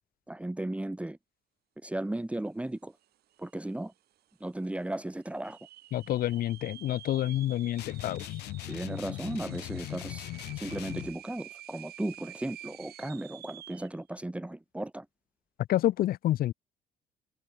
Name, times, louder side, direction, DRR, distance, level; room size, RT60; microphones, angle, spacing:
voice 1, 0.3-1.2 1.8-2.9 3.4-3.9 4.4-5.6 8.7-10.3 10.6-15.1, right 1 dB, 5° right, 2.0 m, -35 dB
sound 1, 3.0-3.1 3.3-3.9 4.4-4.5 5.2-14.0, right 13 dB, 70° right, 3.0 m, -50 dB
voice 2, 5.9-8.4 15.7-16.5, left 13 dB, 60° left, 0.7 m, -28 dB
sound 2, 7.8-11.2, left 18 dB, 80° left, 1.0 m, -39 dB
cardioid pair, 110°, 17 cm